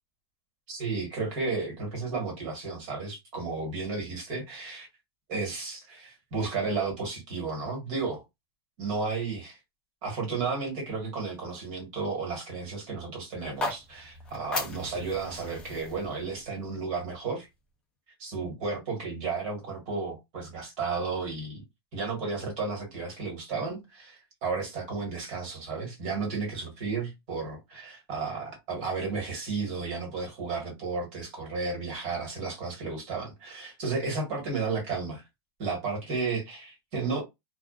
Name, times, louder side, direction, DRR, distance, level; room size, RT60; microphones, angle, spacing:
voice 1, 0.7-4.9 5.3-8.2 8.8-9.6 10.0-17.5 18.2-21.6 21.9-35.2 35.6-37.2, right 4 dB, 35° right, 1.4 m, -33 dB
sound 1, 13.4-17.5, left 2 dB, 5° left, 0.3 m, -38 dB
2.3 x 2.3 x 2.3 m
supercardioid pair, 170°, 13 cm